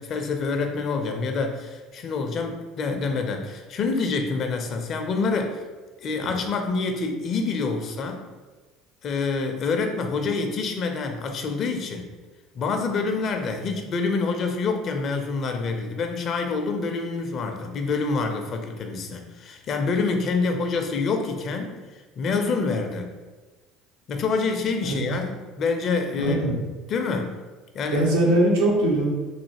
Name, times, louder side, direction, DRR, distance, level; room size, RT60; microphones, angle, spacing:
voice 1, 0.0-5.6 6.0-8.3 9.0-12.1 12.5-21.8 22.2-23.1 24.1-26.4 26.9-27.4 27.7-28.1, left 4 dB, 50° left, 5 dB, 0.5 m, -27 dB
voice 2, 26.2-26.6 27.9-29.1, right 1 dB, 85° right, -3 dB, 0.9 m, -21 dB
3.2 x 2.6 x 2.8 m, 1.3 s
hypercardioid pair, 75°, 0 cm